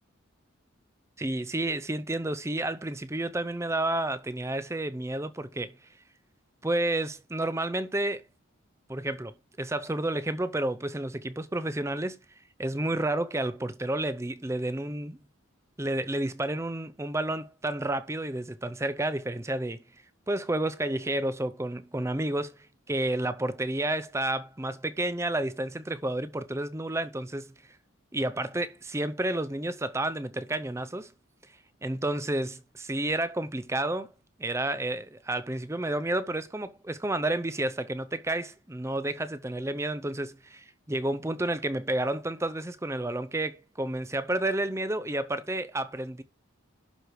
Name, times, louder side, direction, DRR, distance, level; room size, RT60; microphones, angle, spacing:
voice 1, 1.2-5.8 6.6-8.2 8.9-12.2 12.6-15.2 15.8-19.8 20.3-22.6 22.9-27.5 28.1-31.1 31.8-34.1 34.4-46.2, right 1 dB, 15° right, 0.6 m, -30 dB
11.5 x 4.8 x 4.6 m
head